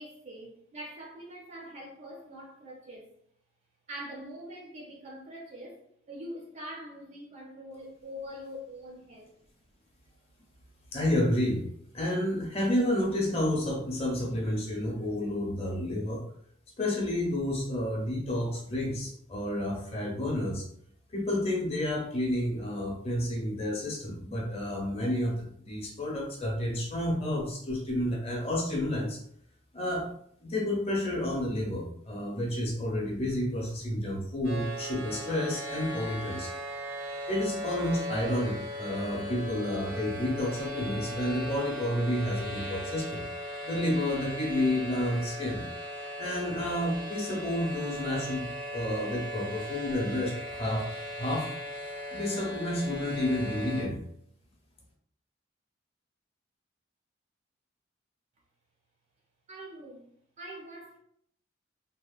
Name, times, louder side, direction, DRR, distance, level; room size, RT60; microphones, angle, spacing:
voice 1, 0.0-3.1 3.9-9.3 59.5-60.1 60.4-61.0, equal, 35° right, 0.4 m, -44 dB
voice 2, 10.9-11.6 11.9-16.2 16.8-20.7 21.1-29.2 29.7-30.1 30.4-36.5 37.3-43.2 43.6-45.6 46.2-50.9 51.2-51.5 52.1-54.0, left 1 dB, 30° left, 0.7 m, -30 dB
sound 1, 34.4-53.8, equal, 90° right, 0.8 m, -38 dB
2.8 x 2.1 x 2.3 m
head